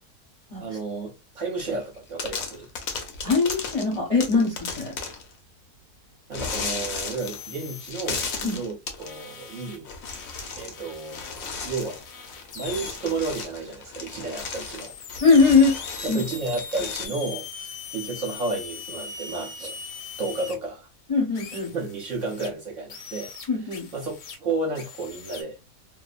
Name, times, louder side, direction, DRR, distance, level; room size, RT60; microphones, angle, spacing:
voice 1, 0.6-2.7 6.3-9.9 10.6-12.0 12.5-14.9 16.0-19.8 20.2-20.9 21.7-23.3 23.6-25.6, right 3 dB, 60° right, 0.9 m, -32 dB
sound 1, 1.6-1.9 2.2-5.3 6.3-7.5 7.8-9.1 9.8-10.8 11.1-17.1, left 5 dB, 65° left, 1.0 m, -35 dB
voice 2, 3.2-4.9 8.4-8.6 15.2-15.8 16.1-16.2 21.1-21.7 23.5-23.9, left 4 dB, 30° left, 0.7 m, -21 dB
sound 2, 7.2-8.6 9.0-13.4 14.4-20.5 21.3-22.5 22.9-24.4 24.7-25.4, left 5 dB, 85° left, 1.3 m, -40 dB
2.7 x 2.0 x 2.3 m
omnidirectional pair, 1.7 m